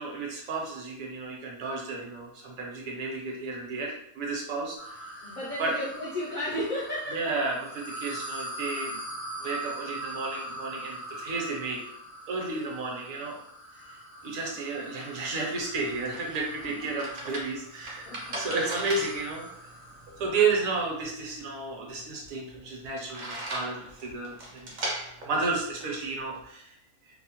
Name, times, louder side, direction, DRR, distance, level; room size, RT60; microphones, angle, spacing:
voice 1, 0.0-5.1 5.6-5.7 7.1-9.0 9.4-11.8 12.3-13.4 13.9-14.0 14.2-19.7 20.1-24.7 25.2-26.8, right 3 dB, 70° right, -1 dB, 1.0 m, -32 dB
sound 1, 4.8-20.4, right 1 dB, 15° left, 0.4 m, -42 dB
voice 2, 5.2-7.3 12.5-12.7 16.6-16.9 18.1-18.4, left 1 dB, 80° left, -7 dB, 0.4 m, -34 dB
sound 2, 15.6-26.5, right 1 dB, 90° right, 0.4 m, -39 dB
2.7 x 2.0 x 2.8 m, 0.74 s
omnidirectional pair, 1.6 m